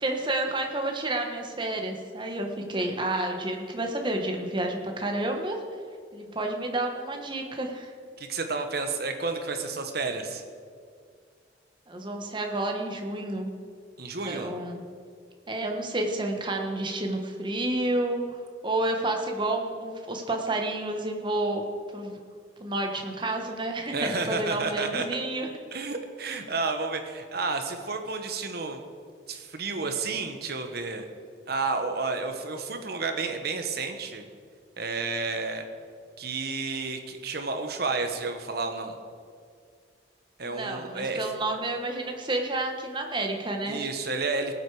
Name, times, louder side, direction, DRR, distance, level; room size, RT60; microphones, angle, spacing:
voice 1, 0.0-5.6 6.1-7.9 11.9-13.5 14.2-14.8 15.5-18.4 18.6-21.6 21.9-22.2 22.6-25.5 40.4-43.9, right 2 dB, 25° right, 3 dB, 1.2 m, -30 dB
voice 2, 8.2-10.4 14.0-14.5 23.9-25.0 25.7-28.8 29.3-31.1 31.5-34.2 34.8-35.6 36.2-38.9 40.4-41.3 43.6-44.5, right 3 dB, 55° right, 6 dB, 1.2 m, -31 dB
18.5 x 8.1 x 4.8 m, 2.1 s
head